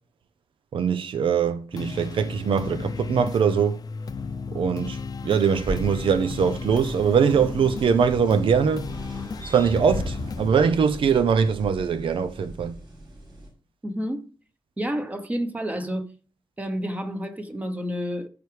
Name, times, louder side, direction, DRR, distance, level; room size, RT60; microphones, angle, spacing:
voice 1, 0.7-3.8 4.5-5.0 5.2-8.9 9.4-12.7, right 6 dB, 85° right, 0.6 m, -22 dB
sound 1, 1.7-10.5, left 5 dB, 45° left, 0.6 m, -35 dB
sound 2, 5.5-13.5, equal, 65° right, 5.2 m, -37 dB
voice 2, 13.8-14.3 14.8-16.0 16.6-18.3, equal, 15° right, 0.9 m, -29 dB
14.0 x 4.8 x 3.3 m
wide cardioid pair, 165°, 9 cm